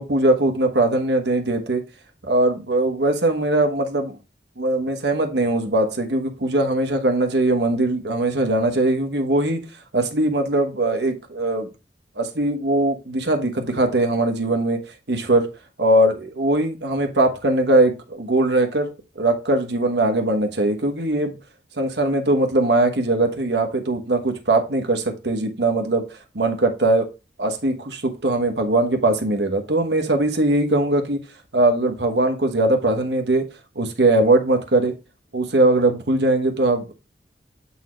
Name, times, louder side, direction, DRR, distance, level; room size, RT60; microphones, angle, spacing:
voice 1, 0.0-1.8 2.2-4.2 4.6-9.6 9.9-11.7 12.2-14.8 15.1-15.5 15.8-18.9 19.2-21.4 21.8-26.0 26.3-27.1 27.4-31.2 31.5-33.4 33.7-34.9 35.3-36.9, right 2 dB, 70° right, 1.2 m, -20 dB
8.2 x 4.2 x 3.1 m
head